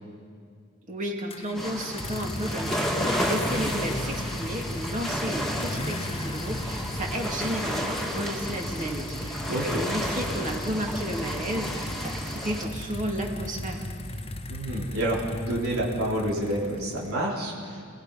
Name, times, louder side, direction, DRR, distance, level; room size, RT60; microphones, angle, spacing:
voice 1, 0.9-13.8, equal, 35° right, 0 dB, 2.8 m, -32 dB
sound 1, 1.3-17.3, left 1 dB, 25° left, 1.0 m, -36 dB
sound 2, 1.5-12.6, equal, ahead, 2.3 m, -32 dB
voice 2, 9.5-9.8 14.5-17.9, right 1 dB, 80° right, -5 dB, 3.6 m, -29 dB
28.5 x 19.0 x 5.5 m, 2.2 s
head